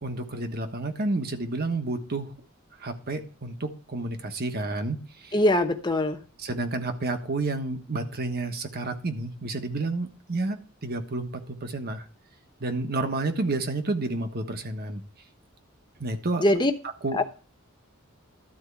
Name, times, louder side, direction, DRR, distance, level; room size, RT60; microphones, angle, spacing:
voice 1, 0.0-2.3 2.8-5.4 6.4-12.1 12.6-15.0 16.0-16.4 17.0-17.2, right 2 dB, 50° right, 7 dB, 1.3 m, -30 dB
voice 2, 5.3-6.2 16.4-16.7 17.1-17.3, left 1 dB, 20° left, 5 dB, 1.0 m, -22 dB
12.5 x 4.4 x 8.3 m, 0.36 s
head